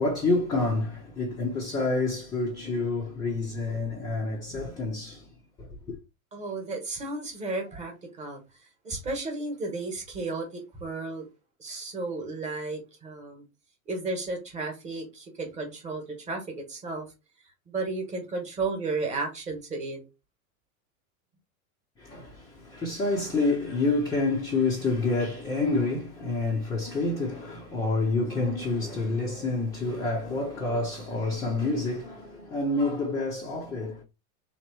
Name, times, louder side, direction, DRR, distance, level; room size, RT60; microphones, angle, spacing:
voice 1, 0.0-5.3 5.6-6.0 22.0-34.0, left 3 dB, 10° left, 0.6 m, -28 dB
voice 2, 6.3-8.4 8.8-11.3 11.6-13.5 13.9-17.1 17.7-20.0, right 3 dB, 15° right, 1.2 m, -33 dB
3.6 x 3.1 x 4.5 m
supercardioid pair, 160°, 42 cm